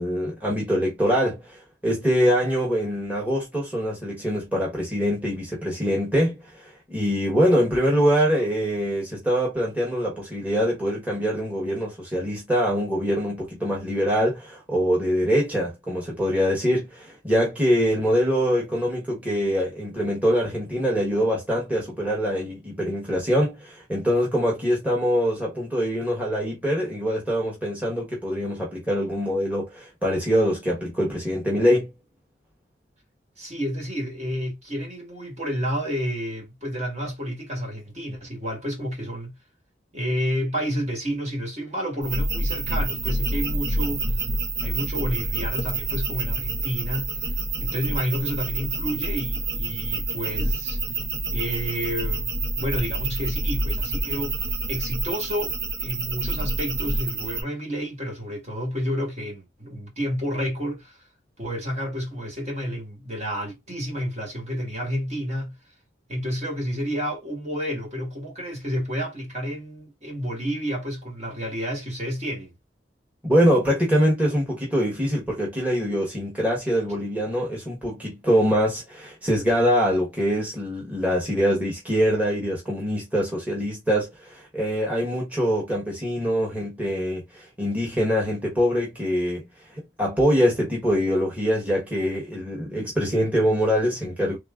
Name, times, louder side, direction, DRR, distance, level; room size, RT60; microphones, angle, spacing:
voice 1, 0.0-31.9 73.2-89.4 89.7-94.4, equal, 10° right, 1.4 m, -24 dB
voice 2, 33.4-39.4 39.9-44.1 44.6-47.1 47.6-50.8 51.3-54.4 54.7-61.0 61.4-65.6 66.1-72.5, equal, 35° right, 1.9 m, -30 dB
sound 1, 42.0-57.4, right 2 dB, 65° right, 1.3 m, -27 dB
3.5 x 3.1 x 3.7 m
head